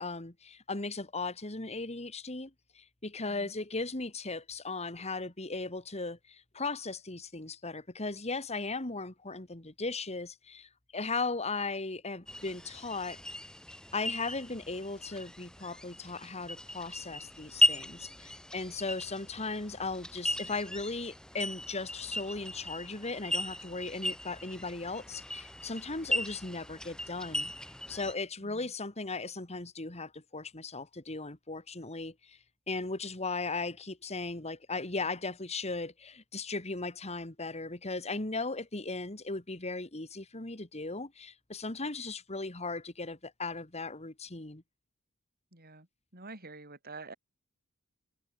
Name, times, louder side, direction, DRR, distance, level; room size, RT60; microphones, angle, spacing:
voice 1, 0.0-13.2 13.9-27.5 27.9-32.4 32.7-44.6, left 3 dB, 30° left, 2.3 m, -37 dB
sound 1, 12.3-28.1, left 1 dB, 5° left, 3.6 m, -36 dB
voice 2, 45.5-45.9 46.1-47.1, right 3 dB, 45° right, 7.6 m, -47 dB
head